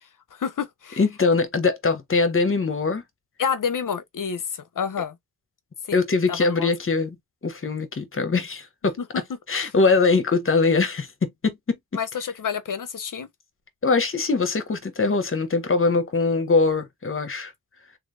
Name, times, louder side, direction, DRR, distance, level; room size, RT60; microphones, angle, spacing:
voice 1, 0.0-1.0 3.4-5.2 5.8-6.0 6.3-6.7 9.0-9.7 11.9-13.3, left 7 dB, 55° left, 0.8 m, -29 dB
voice 2, 1.0-3.0 5.9-7.2 7.4-9.0 9.5-11.6 13.8-17.5, left 4 dB, 35° left, 1.0 m, -22 dB
3.2 x 2.7 x 2.5 m
cardioid pair, 55°, 37 cm